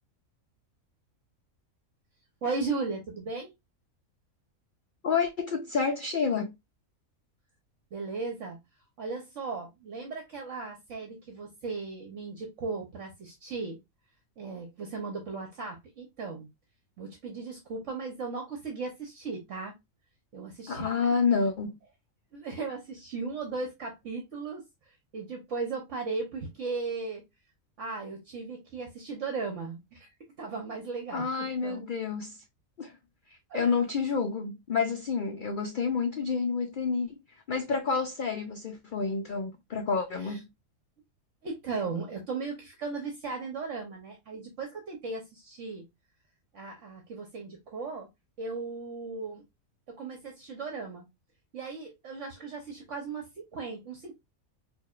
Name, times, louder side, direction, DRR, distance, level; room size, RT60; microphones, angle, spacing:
voice 1, 2.4-3.5 7.9-8.6 9.0-13.8 14.4-16.5 17.0-19.7 20.3-21.0 22.3-27.2 27.8-30.1 30.4-31.3 31.6-31.9 33.5-33.7 40.2-40.4 41.4-45.9 46.5-48.1 48.4-49.4 49.9-51.1 51.5-54.1, right 4 dB, 60° right, 1.2 m, -36 dB
voice 2, 5.0-6.6 20.7-21.7 31.1-32.4 32.8-33.0 33.5-37.2 37.5-40.4, left 5 dB, 85° left, 0.4 m, -29 dB
4.6 x 2.7 x 2.4 m
omnidirectional pair, 1.5 m